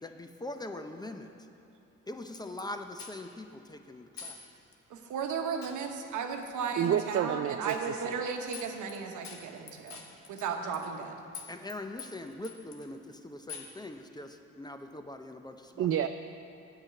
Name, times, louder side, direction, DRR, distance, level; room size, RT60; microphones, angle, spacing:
voice 1, 0.0-1.3 2.1-4.4 11.5-15.9, left 1 dB, 15° left, 6 dB, 0.6 m, -42 dB
sound 1, 2.3-2.6 3.0-3.4 4.2-4.4 4.7-4.8 5.6-5.8 6.8-7.0 7.7-7.8 8.1-8.2 8.5-9.0 9.2-11.1 11.3-11.7 12.0-12.9 13.5-13.8, left 6 dB, 65° left, 1.3 m, -45 dB
voice 2, 4.9-10.0 10.3-11.2, right 5 dB, 80° right, 4 dB, 1.0 m, -35 dB
voice 3, 6.8-8.2 15.8-16.1, right 10 dB, 50° right, 8 dB, 0.4 m, -29 dB
8.8 x 5.9 x 7.8 m, 3.0 s
cardioid pair, 90°, 30 cm